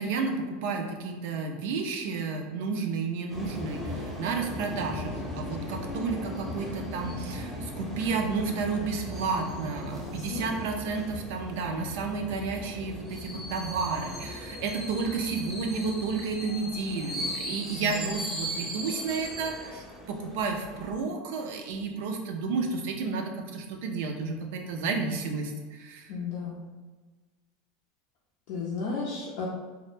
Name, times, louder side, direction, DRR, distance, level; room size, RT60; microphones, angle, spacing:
voice 1, 0.0-26.1, right 4 dB, 70° right, 3 dB, 0.4 m, -31 dB
sound 1, 3.3-20.9, equal, 5° right, 0.7 m, -38 dB
voice 2, 10.0-10.5 17.8-18.2 26.1-26.6 28.5-29.5, left 4 dB, 65° left, -5 dB, 0.4 m, -34 dB
2.1 x 2.0 x 3.1 m, 1.3 s
hypercardioid pair, 95°, 0 cm